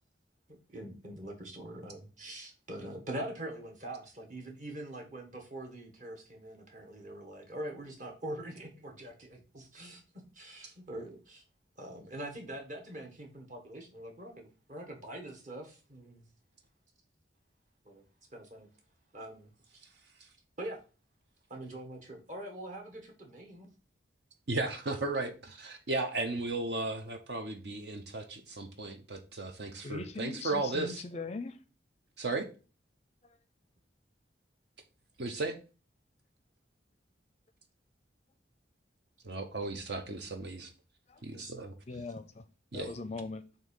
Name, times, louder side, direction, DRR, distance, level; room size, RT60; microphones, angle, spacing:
voice 1, 0.7-10.0 10.3-11.4 11.8-16.2 17.8-18.0 18.3-18.7 19.1-19.5 20.6-20.8 21.5-23.7 41.3-41.5 41.9-42.0, right 1 dB, 40° right, 1.7 m, -43 dB
voice 2, 24.5-31.0 32.2-32.4 35.2-35.6 39.2-40.7 41.2-41.7 42.7-42.9, right 3 dB, 60° right, 0.7 m, -35 dB
voice 3, 29.8-31.6 41.1-41.2 41.9-42.4 42.7-43.4, left 3 dB, 35° left, 0.5 m, -40 dB
7.5 x 2.8 x 5.3 m
head